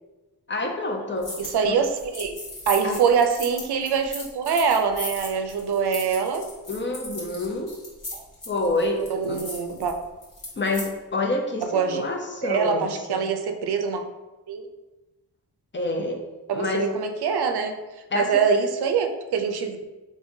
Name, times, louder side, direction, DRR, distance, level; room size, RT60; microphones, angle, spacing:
voice 1, 0.5-1.3 1.6-1.8 2.8-3.0 6.7-7.7 8.5-9.4 10.6-13.2 15.7-16.2 16.5-16.9 18.1-18.2, left 2 dB, 30° left, 2 dB, 0.7 m, -27 dB
sound 1, 1.2-1.6 1.8-10.9, left 1 dB, 50° left, 1.4 m, -37 dB
voice 2, 1.4-2.4 2.7-6.5 8.1-8.2 9.0-9.9 11.6-12.0 12.4-14.1 14.5-14.7 16.5-17.8 18.1-19.9, right 6 dB, 70° right, 6 dB, 0.5 m, -24 dB
3.5 x 3.4 x 2.7 m, 1.1 s
cardioid pair, 50°, 40 cm